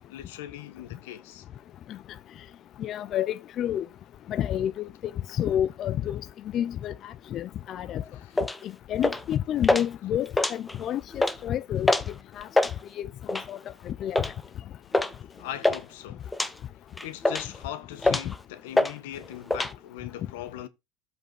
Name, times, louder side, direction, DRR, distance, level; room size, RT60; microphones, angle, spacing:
voice 1, 0.1-1.4 8.1-8.3 15.4-16.3 17.0-20.7, left 12 dB, 70° left, 1.7 m, -40 dB
voice 2, 2.8-3.9 4.3-4.9 5.3-6.2 6.5-8.0 8.6-11.9 12.4-12.5 13.0-13.6 13.9-14.2, left 10 dB, 30° left, 0.5 m, -29 dB
sound 1, 8.4-8.6 9.0-9.3 9.6-9.9 10.3-10.8 11.1-11.4 11.9-12.1 12.4-12.7 13.3-13.6 14.1-14.3 14.9-15.1 15.4-15.8 16.3-16.5 17.0-17.6 18.0-18.4 18.8-18.9 19.2-19.7, left 2 dB, 5° left, 0.9 m, -24 dB
8.2 x 5.1 x 6.3 m
supercardioid pair, 160°, 0 cm